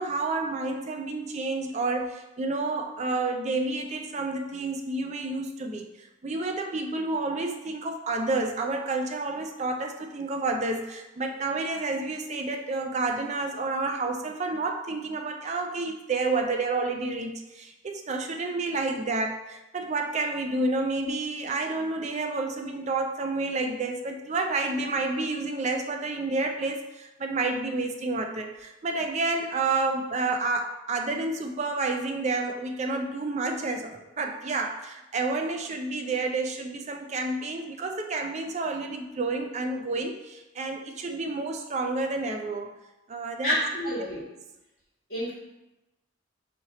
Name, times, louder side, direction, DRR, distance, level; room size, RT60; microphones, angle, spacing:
voice 1, 0.0-42.7 43.1-43.9, right 3 dB, 35° right, 4 dB, 0.4 m, -30 dB
voice 2, 43.4-44.2 45.1-45.3, equal, 55° left, -12 dB, 1.5 m, -28 dB
4.2 x 3.0 x 3.9 m, 1.0 s
head